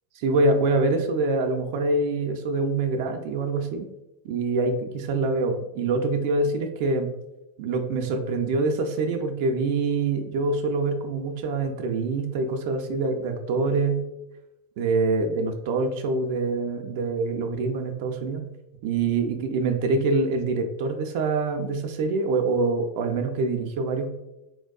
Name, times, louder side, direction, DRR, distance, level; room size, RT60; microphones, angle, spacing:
voice 1, 0.2-3.9 4.2-7.1 7.6-14.0 14.8-18.4 18.8-24.1, right 3 dB, 50° right, 5 dB, 0.3 m, -25 dB
4.1 x 2.2 x 2.2 m, 0.94 s
figure-of-eight pair, 90°, 0 cm